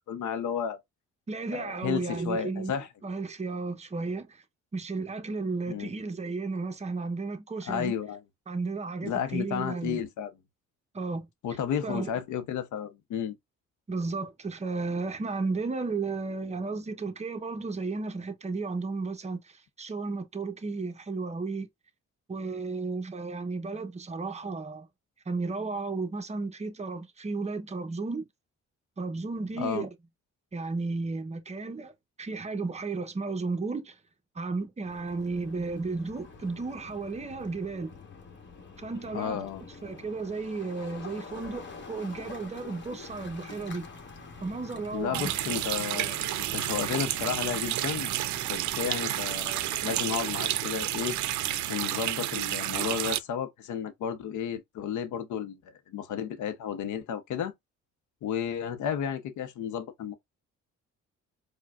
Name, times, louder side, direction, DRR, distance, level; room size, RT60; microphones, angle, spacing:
voice 1, 0.1-0.8 1.5-2.9 5.7-5.9 7.7-8.2 9.0-10.3 11.4-13.4 29.6-29.9 39.1-39.6 44.9-46.2 46.5-48.1 48.5-51.2 51.7-55.6 55.9-57.5 58.2-60.1, left 8 dB, 75° left, 0.7 m, -32 dB
voice 2, 1.3-2.7 3.0-4.4 4.7-7.9 8.5-10.0 10.9-11.3 11.8-12.1 13.9-21.7 22.3-24.9 25.3-28.3 29.0-29.9 30.5-31.9 32.2-34.0 34.3-37.9 38.8-39.5 39.8-43.9 44.4-45.3, right 3 dB, 20° right, 0.7 m, -33 dB
sound 1, 34.9-51.8, left 4 dB, 40° left, 1.2 m, -47 dB
Water tap faucet, 45.1-53.2, right 14 dB, 70° right, 0.5 m, -30 dB
4.8 x 2.2 x 2.3 m
cardioid pair, 90°, 30 cm